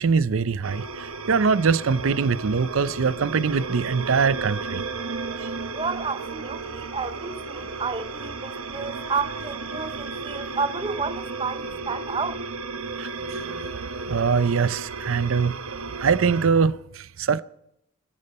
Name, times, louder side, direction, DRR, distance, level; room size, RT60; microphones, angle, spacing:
voice 1, 0.0-4.8 13.0-17.4, right 5 dB, 75° right, 0.5 m, -23 dB
sound 1, 0.6-16.5, right 3 dB, 90° right, 1.1 m, -34 dB
voice 2, 5.7-12.4, right 4 dB, 25° right, 0.6 m, -31 dB
21.5 x 12.0 x 4.2 m
head